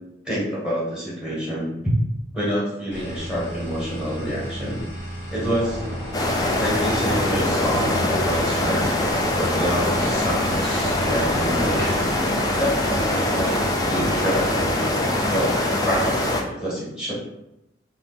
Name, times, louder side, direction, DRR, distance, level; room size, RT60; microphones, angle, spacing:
voice 1, 0.2-1.9 2.3-4.8 5.3-5.8 6.6-8.9 9.4-12.3 12.6-15.6 15.8-17.1, equal, 5° right, -6 dB, 0.9 m, -27 dB
sound 1, 2.9-12.3, equal, 35° right, 1.0 m, -34 dB
sound 2, 5.6-14.8, left 1 dB, 55° right, 1.4 m, -34 dB
sound 3, 6.1-16.4, left 1 dB, 20° left, 0.3 m, -23 dB
2.9 x 2.1 x 3.5 m, 0.88 s
head